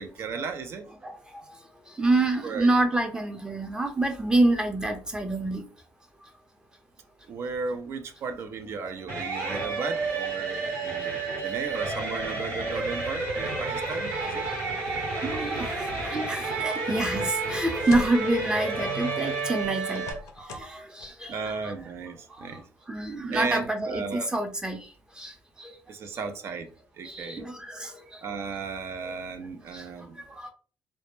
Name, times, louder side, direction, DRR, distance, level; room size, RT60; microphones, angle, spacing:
voice 1, 0.0-1.0 2.4-2.7 7.3-14.5 21.3-22.6 23.3-24.3 25.9-26.7 27.0-27.4 28.2-30.2, right 5 dB, 55° right, 0.5 m, -35 dB
voice 2, 1.0-1.4 2.0-5.7 9.3-9.7 10.1-10.2 10.6-11.1 14.8-20.1 20.4-21.4 21.6-21.7 22.4-22.5 22.9-24.9 25.2-25.3 25.6-25.7 27.0-28.2 29.7-29.8 30.3-30.5, right 2 dB, 15° right, 0.6 m, -28 dB
sound 1, 9.1-20.1, right 3 dB, 75° right, 1.0 m, -30 dB
sound 2, 16.7-16.9 17.3-18.3 19.6-20.7 21.0-21.1, left 3 dB, 75° left, 0.4 m, -41 dB
2.1 x 2.1 x 3.0 m
supercardioid pair, 80°, 5 cm